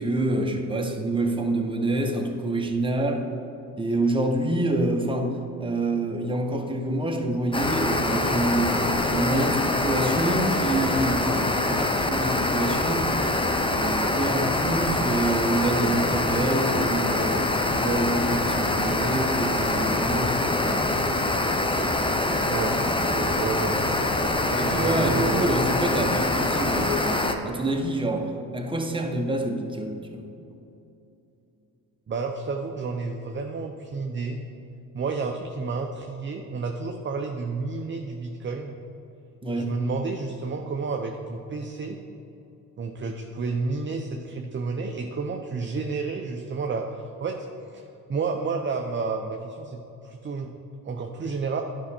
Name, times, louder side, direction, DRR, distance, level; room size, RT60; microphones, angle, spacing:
voice 1, 0.0-3.3 3.8-5.3 5.6-8.8 9.1-13.1 13.6-17.5 17.8-21.1 24.5-30.3 39.4-39.7, right 1 dB, 10° right, 2 dB, 1.2 m, -27 dB
sound 1, 7.5-27.4, left 2 dB, 15° left, 0.8 m, -24 dB
voice 2, 23.0-25.5 32.1-34.4 34.9-38.8 39.5-42.0 42.8-47.8 48.1-50.5 50.8-51.6, right 4 dB, 30° right, 3 dB, 0.7 m, -31 dB
11.0 x 5.5 x 4.4 m, 2.8 s
supercardioid pair, 70°, 41 cm